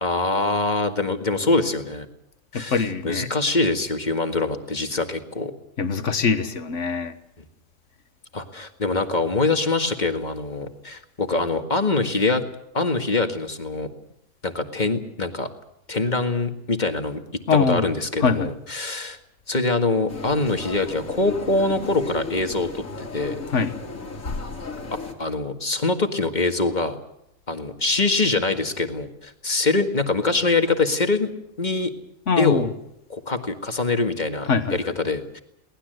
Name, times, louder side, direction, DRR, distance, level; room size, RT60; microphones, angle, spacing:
voice 1, 0.0-2.1 2.5-5.5 8.3-12.4 12.7-13.9 14.4-15.5 15.9-17.2 17.5-19.2 19.5-23.4 25.2-27.0 27.5-31.3 31.6-31.9 32.4-32.7 33.1-35.4, left 3 dB, 35° left, 6 dB, 1.9 m, -24 dB
voice 2, 2.5-3.3 5.8-7.2 17.5-17.9 18.2-18.5 23.5-23.8 32.3-32.7 34.5-34.8, left 5 dB, 65° left, 10 dB, 1.8 m, -22 dB
sound 1, 20.1-25.1, left 3 dB, 80° left, 3.0 m, -34 dB
23.0 x 19.0 x 7.9 m, 0.78 s
omnidirectional pair, 1.4 m